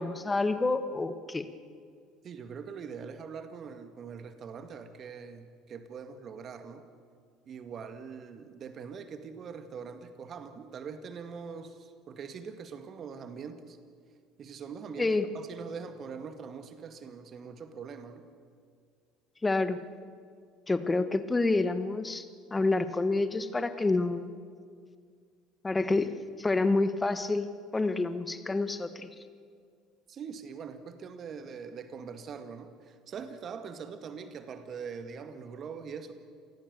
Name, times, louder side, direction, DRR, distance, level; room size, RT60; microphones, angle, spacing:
voice 1, 0.0-1.5 15.0-15.3 19.4-19.8 20.7-22.3 22.5-24.3 25.6-27.5 27.7-29.1, left 3 dB, 20° left, 11 dB, 1.7 m, -28 dB
voice 2, 2.2-6.8 7.5-13.8 14.4-18.3 30.1-36.1, right 6 dB, 45° right, 8 dB, 2.0 m, -43 dB
28.0 x 19.5 x 6.9 m, 2.1 s
hypercardioid pair, 65°, 0 cm